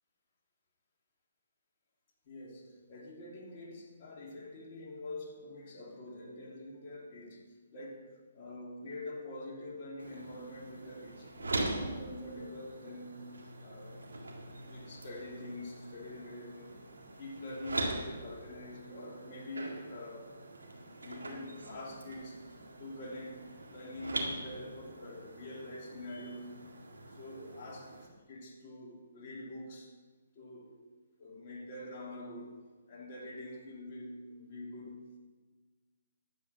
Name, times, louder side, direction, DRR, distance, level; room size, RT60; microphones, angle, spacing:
voice 1, 2.2-7.4 7.7-13.3 13.6-14.0 14.6-16.8 17.2-20.6 21.0-22.5 22.8-26.6 27.1-29.9 30.3-30.8 31.2-35.1, left 1 dB, 40° left, -2 dB, 2.9 m, -45 dB
sound 1, 10.0-28.1, right 2 dB, 90° right, 2.0 m, -42 dB
11.0 x 7.5 x 7.0 m, 1.3 s
hypercardioid pair, 145°, 0 cm